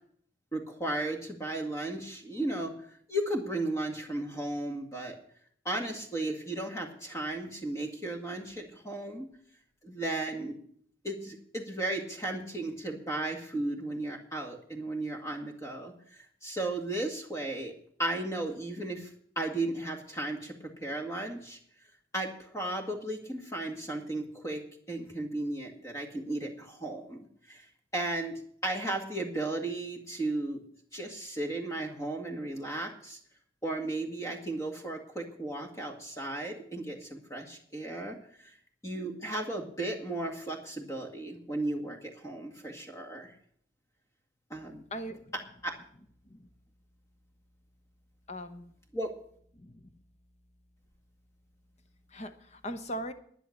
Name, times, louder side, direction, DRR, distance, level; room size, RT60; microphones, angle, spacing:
voice 1, 0.5-2.7 3.1-5.2 5.7-9.3 9.8-10.6 11.0-15.9 16.4-19.1 19.4-21.6 22.1-24.6 24.9-27.6 27.9-30.6 30.9-33.2 33.6-38.2 38.4-38.5 38.8-43.3 44.5-44.8 45.6-45.8 48.9-49.1, right 2 dB, 15° left, 3 dB, 1.9 m, -35 dB
voice 2, 44.9-45.3 46.3-46.5 48.3-48.7 49.6-49.9 52.1-53.1, equal, 40° left, 9 dB, 1.0 m, -40 dB
11.0 x 10.0 x 6.7 m, 0.62 s
head